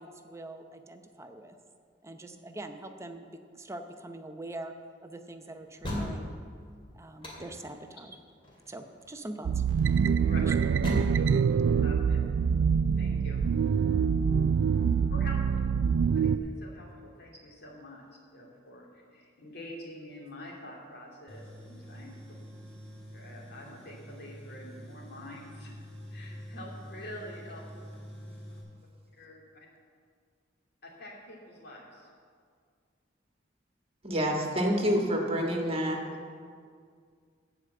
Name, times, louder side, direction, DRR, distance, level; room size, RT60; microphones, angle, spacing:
voice 1, 0.0-1.6 2.0-4.7 5.0-6.3 6.9-8.2 8.7-9.6 10.5-10.6, right 2 dB, 15° right, 6 dB, 0.7 m, -43 dB
sound 1, 5.8-6.5 7.2-7.8 8.4-8.7 9.0-9.1 10.8-11.1, left 1 dB, 30° left, 2.4 m, -34 dB
sound 2, 9.5-16.4, right 6 dB, 75° right, 0.3 m, -25 dB
voice 2, 11.6-12.2 13.0-13.4 15.1-15.4 16.1-18.1 18.3-22.2 23.1-25.7 26.1-27.7 29.2-29.7 30.8-32.1, left 1 dB, 60° left, -2 dB, 2.7 m, -46 dB
Tools, 21.3-28.6, equal, 5° left, 2.9 m, -46 dB
voice 3, 34.0-36.0, equal, 30° right, 1 dB, 1.6 m, -27 dB
15.0 x 5.1 x 8.0 m, 2.1 s
head